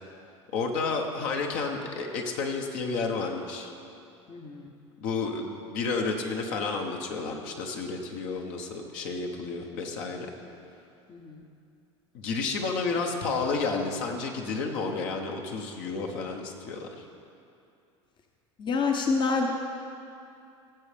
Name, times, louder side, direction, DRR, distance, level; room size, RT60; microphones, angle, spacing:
voice 1, 0.5-3.7 5.0-10.3 12.1-17.0, left 4 dB, 60° left, 2 dB, 1.3 m, -31 dB
voice 2, 4.3-4.7 11.1-11.4 18.6-19.5, left 4 dB, 30° left, 3 dB, 0.9 m, -27 dB
17.0 x 7.2 x 3.5 m, 2.6 s
hypercardioid pair, 75°, 16 cm